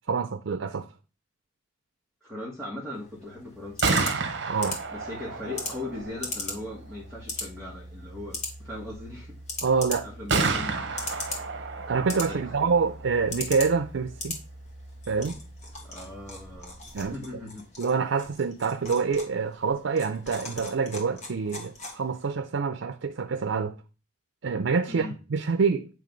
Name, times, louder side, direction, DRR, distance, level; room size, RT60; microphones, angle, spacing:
voice 1, 0.1-0.9 4.5-4.8 9.6-10.1 11.9-14.4 15.1-15.4 16.9-17.2 17.8-23.8 24.4-25.9, right 5 dB, 90° right, 0.5 m, -26 dB
voice 2, 2.2-4.2 4.9-9.3 10.0-11.1 12.3-12.5 15.8-16.8 17.1-17.7 24.9-25.1, left 2 dB, 5° left, 1.4 m, -39 dB
sound 1, 2.9-22.3, left 3 dB, 40° left, 1.6 m, -40 dB
Gunshot gunfire, 3.6-17.4, right 4 dB, 65° right, 0.9 m, -34 dB
8.5 x 3.3 x 5.2 m
head